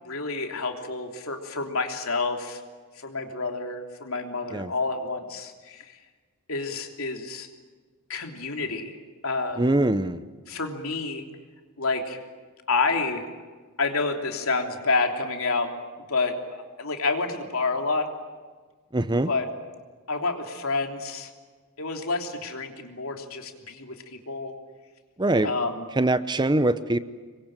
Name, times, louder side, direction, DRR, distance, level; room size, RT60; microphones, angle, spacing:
voice 1, 0.0-2.6 3.0-6.0 6.5-7.5 8.1-9.0 9.2-9.6 10.5-11.2 11.8-12.2 12.7-13.2 13.8-15.7 16.1-18.1 19.3-19.5 20.1-21.3 21.8-24.5 25.4-25.8, left 3 dB, 70° left, 3 dB, 3.3 m, -29 dB
voice 2, 9.6-10.2 18.9-19.3 25.2-25.5 26.0-27.0, right 2 dB, 20° right, 13 dB, 0.7 m, -23 dB
26.5 x 23.0 x 9.0 m, 1.4 s
head